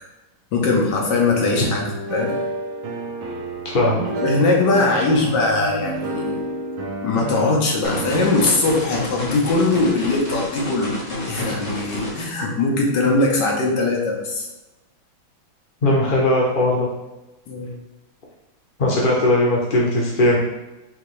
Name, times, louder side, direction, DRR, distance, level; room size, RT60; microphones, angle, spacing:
voice 1, 0.5-2.3 4.2-6.4 7.0-10.9 11.3-14.5 17.5-17.7, left 3 dB, 65° left, -1 dB, 1.5 m, -20 dB
sound 1, 1.3-11.3, right 1 dB, 85° right, 1.6 m, -31 dB
voice 2, 3.6-4.0 15.8-16.9 18.8-20.4, left 1 dB, 80° left, -3 dB, 0.4 m, -18 dB
sound 2, 7.8-12.2, left 2 dB, 30° left, 1.0 m, -29 dB
5.6 x 2.9 x 3.2 m, 1.1 s
omnidirectional pair, 2.2 m